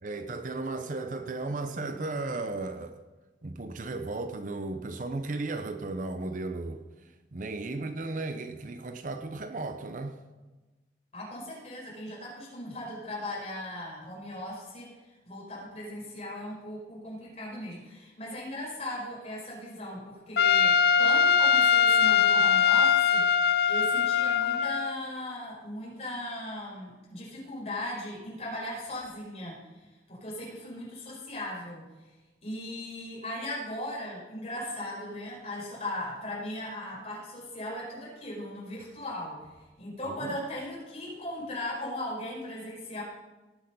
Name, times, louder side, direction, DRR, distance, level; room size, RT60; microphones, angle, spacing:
voice 1, 0.0-3.0 3.4-6.8 7.3-10.2 40.0-40.3, right 2 dB, 45° right, 0.6 m, -35 dB
voice 2, 11.1-32.1 32.4-39.5 39.8-43.0, left 1 dB, 35° left, 4.9 m, -38 dB
Trumpet, 20.4-25.0, left 7 dB, 55° left, 0.4 m, -22 dB
18.0 x 6.3 x 5.5 m
head